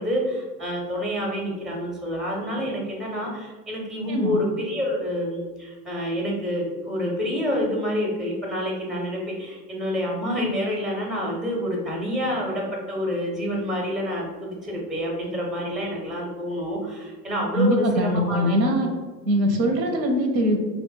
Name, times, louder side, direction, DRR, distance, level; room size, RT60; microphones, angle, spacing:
voice 1, 0.0-18.6 19.5-19.7, equal, ahead, -1 dB, 0.4 m, -28 dB
voice 2, 4.1-4.4 17.5-18.9 19.2-20.6, equal, 90° right, 4 dB, 0.7 m, -22 dB
2.9 x 2.1 x 3.2 m, 1.3 s
hypercardioid pair, 80°, 50 cm